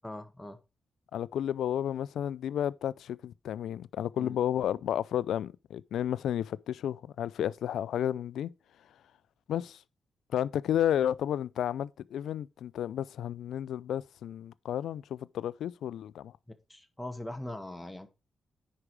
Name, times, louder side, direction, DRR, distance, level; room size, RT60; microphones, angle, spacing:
voice 1, 0.0-0.6 4.2-4.4 16.7-18.1, left 1 dB, 10° left, 1.5 m, -41 dB
voice 2, 1.1-8.5 9.5-9.8 10.3-16.3, left 10 dB, 85° left, 0.3 m, -32 dB
9.9 x 4.9 x 4.7 m
cardioid pair, 70°, 0 cm